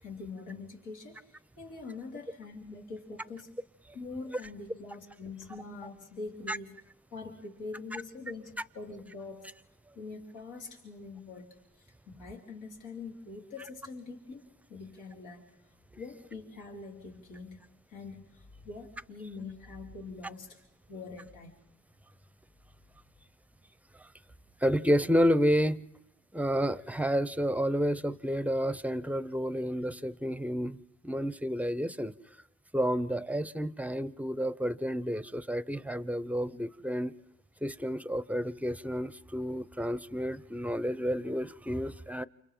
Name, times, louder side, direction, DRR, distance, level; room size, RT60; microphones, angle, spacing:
voice 1, 0.0-3.5 3.9-6.8 7.1-9.5 10.0-11.9 12.1-14.4 14.7-15.5 16.0-17.6 17.9-20.6 20.9-21.5, left 3 dB, 80° left, 3.9 m, -44 dB
voice 2, 24.6-25.8 26.3-30.8 31.0-32.1 32.7-37.1 37.6-42.2, equal, 5° right, 0.7 m, -30 dB
29.5 x 27.5 x 3.8 m
cardioid pair, 90°, 30 cm